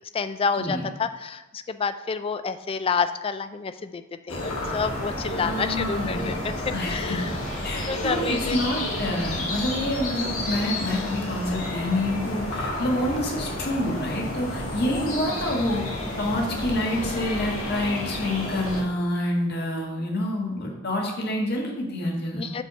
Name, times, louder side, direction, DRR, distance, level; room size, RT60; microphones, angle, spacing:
voice 1, 0.1-7.3 7.7-8.6 14.8-15.1 22.4-22.6, left 5 dB, 25° left, 11 dB, 0.3 m, -29 dB
sound 1, 4.3-18.8, left 1 dB, 85° left, 1.7 m, -31 dB
voice 2, 5.4-6.4 6.7-7.2 7.6-15.8 16.2-22.5, left 1 dB, 50° left, 0 dB, 1.4 m, -27 dB
5.4 x 4.4 x 6.1 m, 1.0 s
head